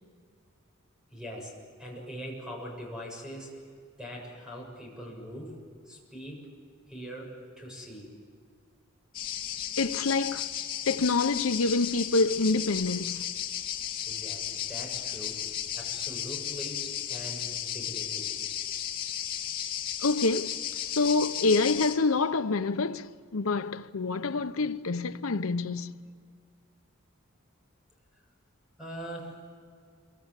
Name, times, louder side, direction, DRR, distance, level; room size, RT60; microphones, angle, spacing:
voice 1, 1.1-3.5 4.0-5.6 5.9-6.5 6.9-8.1 14.0-15.4 15.7-18.3 28.8-29.4, equal, 5° right, 7.1 m, -42 dB
sound 1, 9.1-22.0, left 10 dB, 45° left, 2.5 m, -34 dB
voice 2, 9.8-10.5 10.9-13.3 20.0-20.5 20.8-26.0, left 3 dB, 85° left, 0.9 m, -27 dB
27.0 x 24.5 x 8.2 m
head